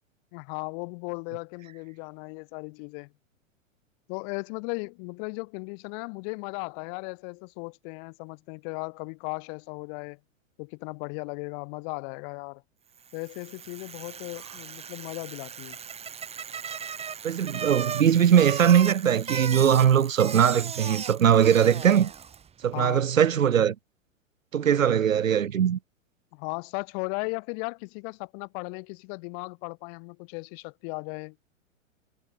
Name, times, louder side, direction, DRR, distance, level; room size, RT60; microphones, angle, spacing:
voice 1, 0.3-3.1 4.1-10.2 10.6-12.6 13.1-15.8 22.7-23.1 26.3-31.4, left 40 dB or more, 45° left, 3.1 m, -36 dB
Bicycle, 13.1-22.5, right 7 dB, 15° right, 1.7 m, -37 dB
voice 2, 17.2-22.1 22.6-23.8 24.5-25.8, right 9 dB, 85° right, 0.7 m, -21 dB
hypercardioid pair, 110°, 39 cm